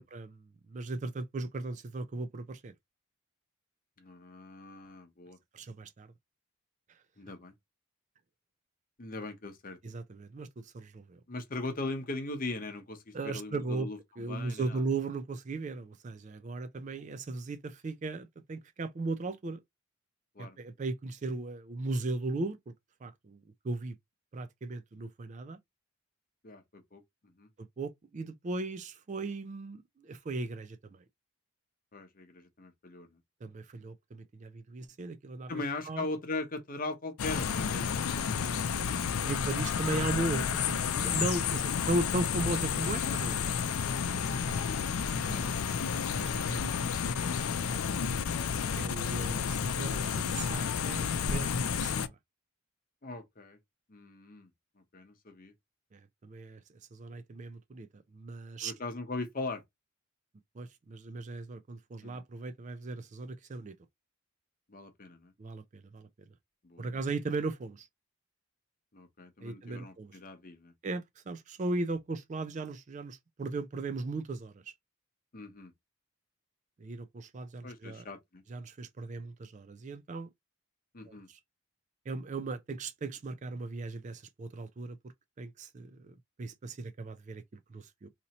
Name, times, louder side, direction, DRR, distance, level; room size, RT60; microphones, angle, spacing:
voice 1, 0.0-2.7 5.5-6.1 9.8-11.2 13.1-13.9 14.2-19.6 20.4-22.7 23.0-24.0 24.3-25.6 27.6-31.0 33.4-36.1 39.2-43.4 45.1-45.6 46.2-47.4 48.8-52.1 55.9-56.6 56.9-58.7 60.6-63.7 65.4-66.1 66.8-67.9 69.4-70.2 70.8-74.7 76.8-78.1 78.5-80.3 81.1-81.4 82.1-85.0 85.4-88.1, right 3 dB, 35° right, 0.3 m, -37 dB
voice 2, 4.0-5.4 7.2-7.5 9.0-9.8 11.3-14.8 20.4-20.6 26.4-27.0 27.4-27.5 31.9-33.1 35.5-38.7 45.2-46.0 53.0-53.6 53.9-54.5 54.9-55.5 58.6-59.6 62.0-62.2 64.7-65.3 66.6-67.0 68.9-70.7 75.3-75.7 77.6-78.4 80.9-81.3, left 2 dB, 40° left, 0.8 m, -40 dB
sound 1, 37.2-52.1, left 6 dB, 80° left, 0.5 m, -31 dB
2.9 x 2.7 x 4.1 m
head